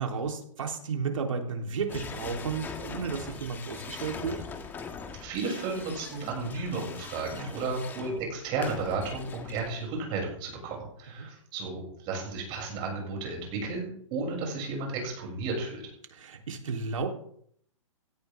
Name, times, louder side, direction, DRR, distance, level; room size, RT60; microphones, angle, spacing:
voice 1, 0.0-4.4 7.4-7.7 11.2-11.3 16.1-17.1, right 5 dB, 75° right, 2 dB, 3.7 m, -33 dB
sound 1, 1.9-10.0, left 5 dB, 10° left, 1.4 m, -42 dB
voice 2, 5.2-15.8, right 3 dB, 30° right, -1 dB, 7.3 m, -33 dB
17.0 x 14.5 x 3.7 m, 0.65 s
hypercardioid pair, 155°, 17 cm